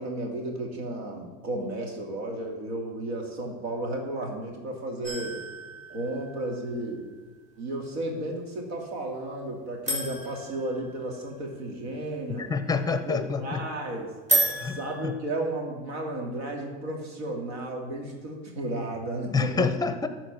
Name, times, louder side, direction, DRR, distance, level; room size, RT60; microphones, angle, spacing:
voice 1, 0.0-5.4 5.9-7.1 7.6-12.5 12.9-14.1 14.6-19.7, right 1 dB, 75° right, 1 dB, 2.5 m, -33 dB
sound 1, 5.0-6.9 9.9-11.6 14.3-15.1, right 1 dB, 20° right, 3.1 m, -31 dB
voice 2, 12.4-13.6 14.6-14.8 15.0-15.1 19.3-20.1, left 5 dB, 10° left, 10 dB, 0.8 m, -27 dB
13.0 x 4.5 x 6.2 m, 1.3 s
supercardioid pair, 105°, 31 cm